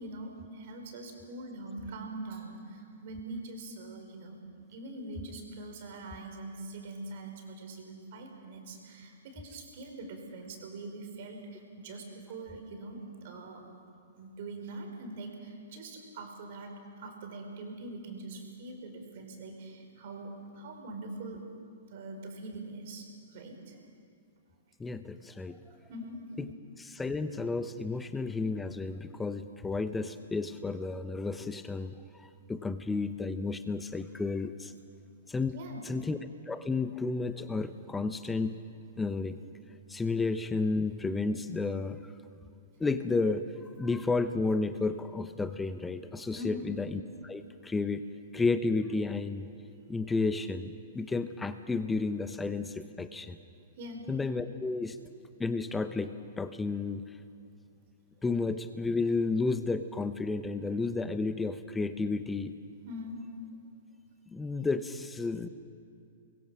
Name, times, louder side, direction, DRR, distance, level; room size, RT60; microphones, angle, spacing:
voice 1, 0.0-4.4 4.7-13.7 14.1-21.4 21.9-23.8 25.9-26.3 35.5-35.9 46.3-46.7 53.8-54.1 62.8-63.3, right 2 dB, 50° right, 3 dB, 4.6 m, -43 dB
voice 2, 24.8-25.6 26.4-26.5 26.8-34.7 35.3-36.2 36.5-38.6 39.0-39.4 39.9-42.1 42.8-43.5 43.7-48.0 48.3-49.5 49.9-53.4 54.1-55.0 55.4-57.2 58.2-62.5 64.3-65.5, left 3 dB, 10° left, 11 dB, 0.9 m, -32 dB
23.0 x 22.0 x 6.3 m, 2.5 s
figure-of-eight pair, 110°, 0 cm